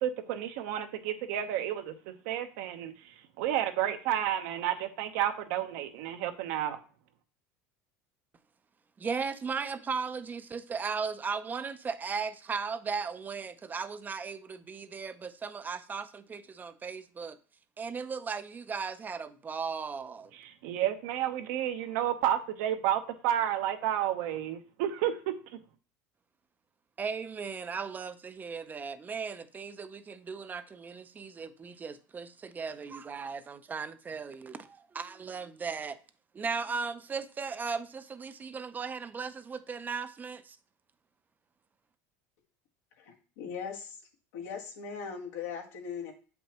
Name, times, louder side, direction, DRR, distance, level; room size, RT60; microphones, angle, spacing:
voice 1, 0.0-6.8 20.3-25.6, right 11 dB, 75° right, 0.9 m, -31 dB
voice 2, 9.0-17.4 17.8-20.3 27.0-36.0 36.3-40.6, right 5 dB, 20° right, 0.5 m, -37 dB
voice 3, 43.0-44.0 44.3-46.1, left 6 dB, 85° left, 1.6 m, -39 dB
7.5 x 5.3 x 3.0 m
supercardioid pair, 120°, 8 cm